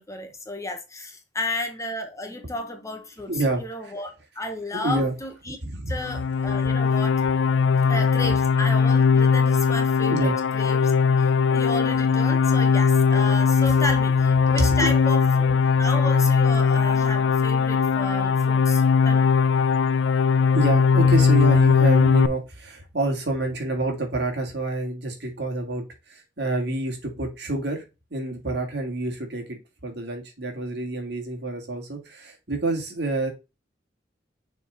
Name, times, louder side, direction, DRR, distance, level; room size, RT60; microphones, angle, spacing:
voice 1, 0.0-5.6 5.9-7.2 7.9-10.9 11.2-19.3, left 1 dB, 15° left, 1.1 m, -33 dB
voice 2, 3.3-3.9 4.7-5.1 5.6-6.0 10.1-10.4 20.5-27.8 28.1-29.4 29.8-33.3, right 2 dB, 65° right, 2.3 m, -28 dB
sound 1, 6.0-22.3, left 5 dB, 80° left, 0.4 m, -19 dB
6.8 x 3.8 x 3.8 m
head